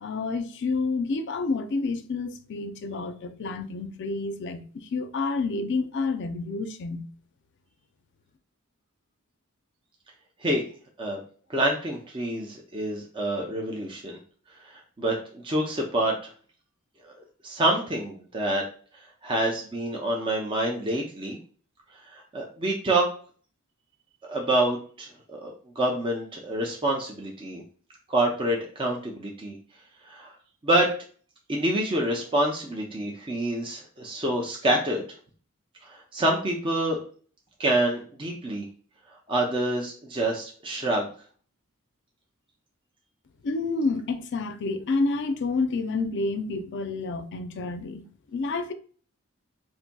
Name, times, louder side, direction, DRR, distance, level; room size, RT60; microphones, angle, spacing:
voice 1, 0.0-7.1 43.4-48.1 48.3-48.7, left 3 dB, 55° left, 0.4 m, -29 dB
voice 2, 11.5-14.2 14.6-16.3 17.0-17.1 17.4-18.6 19.0-21.4 22.1-23.1 24.2-27.6 28.1-29.6 30.0-30.3 30.6-30.9 31.5-35.0 35.8-37.0 37.6-38.6 39.3-41.1, right 1 dB, 25° right, 0.5 m, -27 dB
4.0 x 2.6 x 2.2 m
head